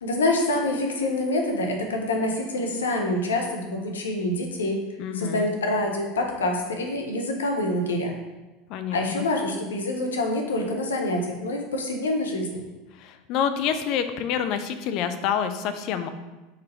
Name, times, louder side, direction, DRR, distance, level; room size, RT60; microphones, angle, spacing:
voice 1, 0.0-4.8 5.2-8.2 8.9-12.6, left 1 dB, 80° left, 2 dB, 0.7 m, -26 dB
voice 2, 5.0-5.5 8.7-9.2 12.9-16.1, left 8 dB, 55° left, 9 dB, 0.4 m, -27 dB
4.3 x 4.0 x 3.0 m, 1.1 s
hypercardioid pair, 80°, 0 cm